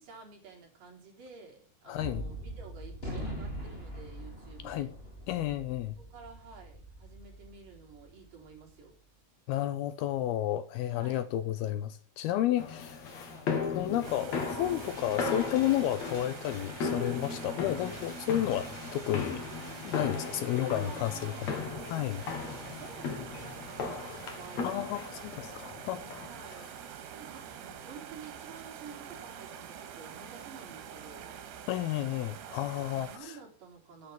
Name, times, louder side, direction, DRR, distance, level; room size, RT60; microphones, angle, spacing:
voice 1, 0.0-4.9 6.0-9.0 10.9-11.3 12.4-12.8 13.2-13.5 20.3-21.9 22.3-25.0 26.2-31.3 33.0-34.1, right 5 dB, 55° right, 5.2 m, -51 dB
voice 2, 1.9-2.2 4.6-4.9 5.3-5.9 9.5-13.0 13.8-19.4 19.8-21.4 21.9-22.2 24.6-26.3 31.7-33.4, left 12 dB, 75° left, 2.5 m, -31 dB
Gunshot gunfire, 2.0-8.5, equal, 15° left, 3.6 m, -42 dB
sound 1, 12.6-26.5, left 5 dB, 50° left, 2.8 m, -37 dB
sound 2, 14.0-33.2, right 8 dB, 80° right, 3.8 m, -46 dB
10.5 x 9.7 x 6.9 m
omnidirectional pair, 4.8 m